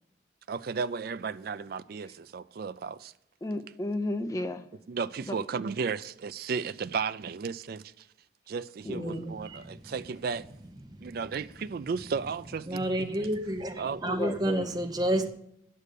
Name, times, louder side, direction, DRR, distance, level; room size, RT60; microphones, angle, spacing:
voice 1, 0.5-3.1 4.9-7.8 8.5-10.5 11.0-13.3 13.8-14.0, right 5 dB, 50° right, 0.3 m, -34 dB
voice 2, 3.4-4.7 5.2-5.4 8.8-9.3 14.0-14.7, left 1 dB, 15° left, 0.5 m, -33 dB
voice 3, 8.9-9.8 10.9-11.1 12.7-15.3, right 1 dB, 20° right, 0.7 m, -30 dB
7.8 x 6.8 x 8.2 m
head